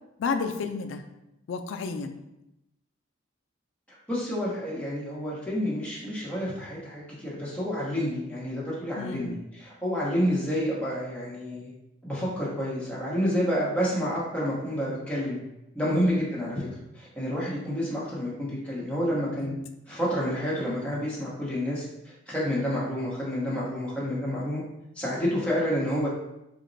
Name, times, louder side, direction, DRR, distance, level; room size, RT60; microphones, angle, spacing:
voice 1, 0.2-1.0 1.5-2.2 9.0-9.3 15.9-16.1 19.4-19.5, left 4 dB, 70° left, 7 dB, 0.3 m, -31 dB
voice 2, 4.1-11.7 12.0-15.4 15.7-16.7 16.9-19.5 19.9-21.8 22.3-24.6 25.0-26.1, equal, 5° left, -7 dB, 0.8 m, -29 dB
2.9 x 2.1 x 3.9 m, 0.88 s
head